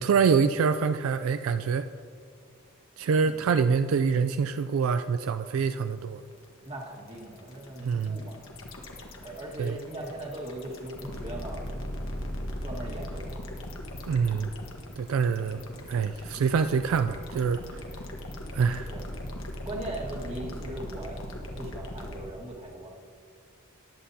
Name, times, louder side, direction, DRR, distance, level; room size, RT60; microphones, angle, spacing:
voice 1, 0.0-1.9 3.0-6.2 7.8-8.2 9.6-9.8 14.1-14.5 15.0-15.6 15.9-17.8 18.5-18.9, right 6 dB, 70° right, 10 dB, 0.3 m, -25 dB
sound 1, 5.8-22.2, left 1 dB, 65° left, 1.4 m, -39 dB
voice 2, 6.6-8.5 9.2-11.6 12.6-13.4 15.2-15.5 18.9-19.1 19.6-21.2 21.6-22.9, right 1 dB, 30° right, -2 dB, 1.8 m, -39 dB
19.5 x 9.4 x 2.8 m, 2.2 s
head